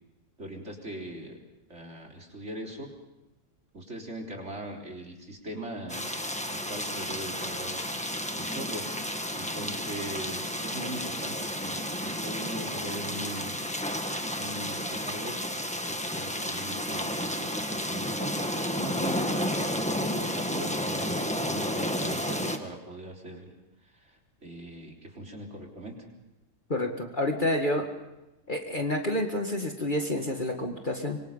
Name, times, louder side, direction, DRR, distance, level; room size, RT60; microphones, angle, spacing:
voice 1, 0.4-1.4 1.7-2.9 3.7-7.8 8.4-8.9 9.3-13.6 14.4-15.4 15.7-18.4 18.7-23.5 23.8-25.9, right 1 dB, 45° right, 0 dB, 4.1 m, -40 dB
sound 1, 5.9-22.6, equal, 5° left, 1.5 m, -32 dB
voice 2, 26.7-27.9 28.5-31.2, left 1 dB, 30° left, 3 dB, 2.0 m, -29 dB
25.5 x 24.0 x 5.6 m, 1.0 s
omnidirectional pair, 1.7 m